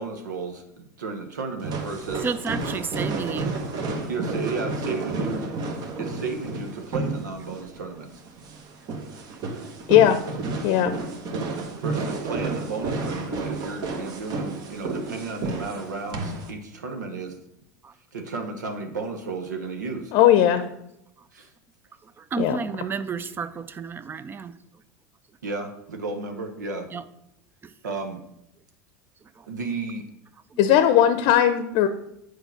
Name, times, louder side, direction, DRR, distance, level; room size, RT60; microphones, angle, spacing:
voice 1, 0.0-2.3 4.1-5.5 6.0-8.2 11.7-17.4 18.1-20.1 21.3-21.5 25.4-26.9 27.8-28.2 29.5-30.1, right 4 dB, 90° right, 1.0 m, -33 dB
sound 1, 1.6-16.5, right 3 dB, 45° right, 1.1 m, -31 dB
voice 2, 2.2-3.6 9.4-9.5 11.5-11.8 17.8-17.9 22.0-24.6 26.9-27.0 27.6-27.7 29.4-29.5, right 5 dB, 20° right, 0.5 m, -32 dB
voice 3, 9.9-10.2 10.6-11.0 20.1-20.7 22.4-22.6 30.6-31.9, left 11 dB, 55° left, 0.7 m, -18 dB
6.8 x 4.7 x 5.8 m
hypercardioid pair, 100°, 9 cm